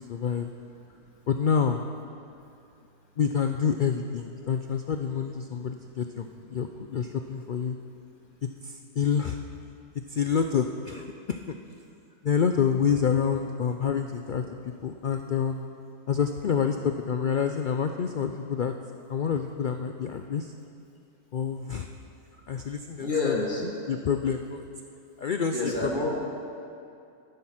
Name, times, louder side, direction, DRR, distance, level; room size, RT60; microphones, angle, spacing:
voice 1, 0.1-0.5 1.3-1.8 3.2-7.8 8.4-9.4 10.1-11.6 12.2-15.6 16.1-18.7 19.1-20.5 21.3-21.9 22.5-23.3 23.9-24.7 25.2-26.1, left 7 dB, 90° left, 6 dB, 0.4 m, -28 dB
voice 2, 23.0-23.7 25.5-26.2, left 3 dB, 35° left, -1 dB, 2.0 m, -28 dB
13.5 x 11.0 x 5.8 m, 2.6 s
omnidirectional pair, 1.5 m